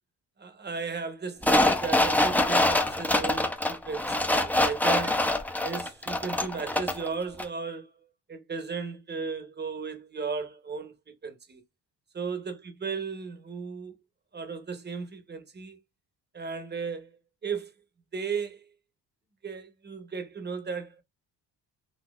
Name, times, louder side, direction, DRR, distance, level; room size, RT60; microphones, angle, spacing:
voice 1, 0.4-5.2 5.6-7.9 8.3-10.9 11.2-11.6 12.1-13.9 14.3-15.8 16.3-17.1 17.4-17.7 18.1-18.6 19.4-21.0, right 5 dB, 25° right, 0.8 m, -35 dB
sound 1, 1.4-7.1 7.4-7.5, left 1 dB, 5° left, 0.4 m, -25 dB
4.1 x 2.7 x 2.3 m
cardioid pair, 85°, 41 cm